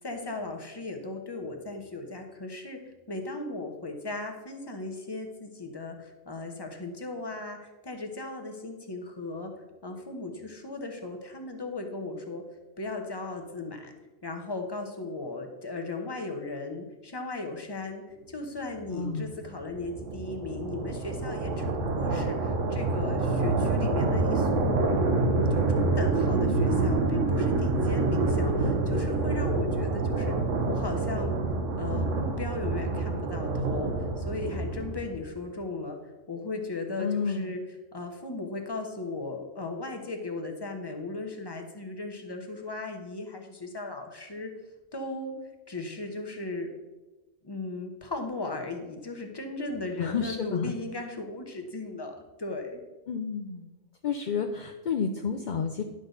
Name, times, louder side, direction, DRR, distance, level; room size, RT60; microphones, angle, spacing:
voice 1, 0.0-9.5 9.8-12.4 12.8-13.9 14.2-18.0 18.3-24.8 25.2-30.4 30.7-31.4 31.8-36.0 36.3-37.6 37.9-44.5 44.9-46.7 47.4-52.8, left 2 dB, 20° left, 4 dB, 1.0 m, -37 dB
voice 2, 18.9-19.3 37.0-37.5 50.0-50.7 53.1-53.7 54.0-55.8, left 6 dB, 55° left, 5 dB, 0.5 m, -30 dB
sound 1, 19.0-35.3, right 3 dB, 75° right, 1.3 m, -27 dB
10.5 x 6.4 x 4.0 m, 1.1 s
omnidirectional pair, 1.3 m